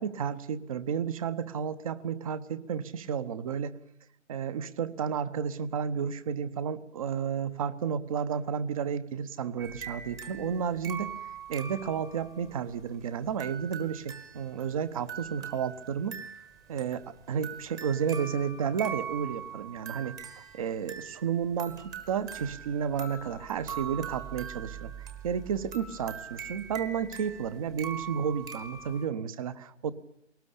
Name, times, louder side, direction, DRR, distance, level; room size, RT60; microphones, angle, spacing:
voice 1, 0.0-3.7 4.3-11.1 11.5-16.2 16.7-24.9 25.2-29.9, right 7 dB, 30° right, 14 dB, 1.1 m, -32 dB
sound 1, 9.6-29.1, right 7 dB, 10° right, 1.3 m, -42 dB
22.0 x 19.0 x 8.6 m, 0.76 s
figure-of-eight pair, 140°, 36 cm